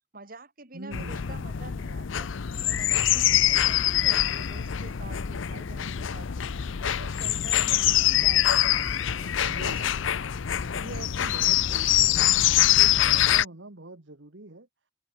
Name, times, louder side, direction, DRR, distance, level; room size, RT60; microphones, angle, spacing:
voice 1, 0.1-2.3 2.7-6.4 6.8-9.3 9.7-9.9, right 2 dB, 50° right, 6.4 m, -47 dB
voice 2, 0.7-1.3 3.3-3.6 9.4-10.0 10.7-14.7, right 2 dB, 70° right, 1.7 m, -43 dB
sound 1, 0.9-13.4, left 12 dB, 85° left, 0.6 m, -24 dB
head